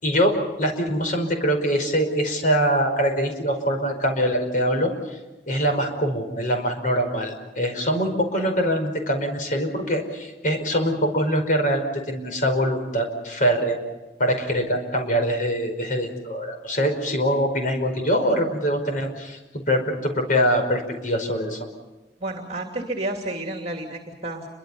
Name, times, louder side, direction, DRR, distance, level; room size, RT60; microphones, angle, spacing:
voice 1, 0.0-5.2 5.5-13.8 14.2-21.6, equal, 45° left, 5 dB, 5.2 m, -23 dB
voice 2, 22.2-24.5, right 2 dB, 35° right, 2 dB, 2.7 m, -31 dB
29.5 x 24.0 x 5.7 m, 1.1 s
head